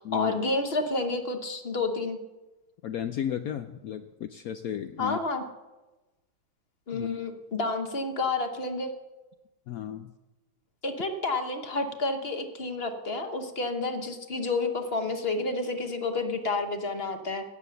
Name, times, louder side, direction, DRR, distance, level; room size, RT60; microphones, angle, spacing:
voice 1, 0.0-2.2 5.0-5.4 6.9-8.9 10.8-17.4, left 3 dB, 40° left, 6 dB, 1.0 m, -30 dB
voice 2, 2.8-5.2 6.9-7.1 9.7-10.1, left 10 dB, 85° left, 9 dB, 0.7 m, -34 dB
17.0 x 7.0 x 7.0 m, 1.1 s
omnidirectional pair, 2.2 m